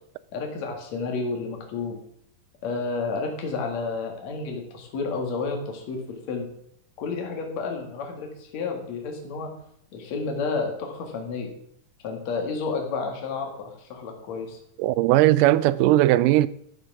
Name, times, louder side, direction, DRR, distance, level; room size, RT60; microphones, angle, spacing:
voice 1, 0.3-2.0 2.6-6.5 7.0-9.5 9.9-11.5 12.0-14.6, left 4 dB, 60° left, 3.0 m, -31 dB
voice 2, 14.8-16.5, right 15 dB, 80° right, 2.0 m, -18 dB
11.5 x 6.8 x 6.1 m
omnidirectional pair, 3.9 m